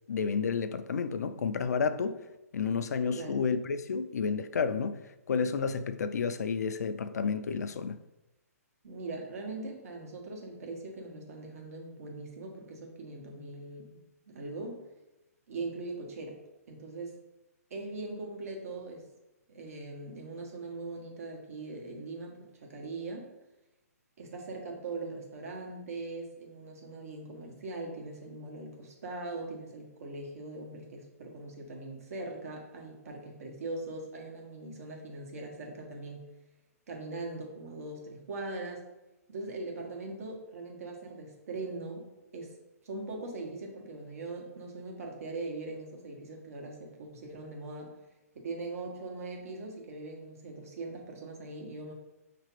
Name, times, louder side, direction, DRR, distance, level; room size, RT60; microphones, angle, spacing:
voice 1, 0.1-2.2 2.5-5.0 5.3-8.0, left 5 dB, 80° left, 0.4 m, -31 dB
voice 2, 8.8-14.0 14.3-14.8 15.5-16.4 16.7-17.1 17.7-19.0 19.5-23.3 24.2-36.3 36.9-38.8 39.3-42.1 42.3-42.5 42.8-47.9 48.3-51.9, right 2 dB, 65° right, 1.3 m, -41 dB
5.9 x 3.0 x 3.0 m
hypercardioid pair, 150°, 9 cm